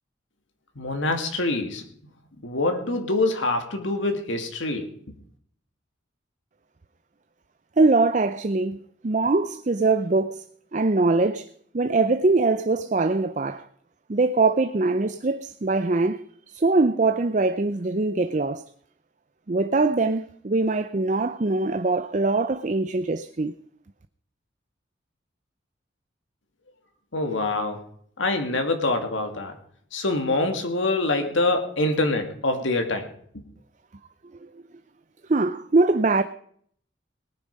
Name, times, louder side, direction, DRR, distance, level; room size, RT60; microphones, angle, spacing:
voice 1, 0.8-1.9 2.4-4.9 27.1-27.8 28.2-29.5 29.9-33.1, left 2 dB, 80° left, 2.2 m, -25 dB
voice 2, 7.8-8.8 9.0-10.4 10.7-11.5 11.7-13.6 14.1-18.6 19.5-23.6 35.3-36.2, right 3 dB, 40° right, 0.5 m, -22 dB
18.5 x 10.0 x 5.3 m
head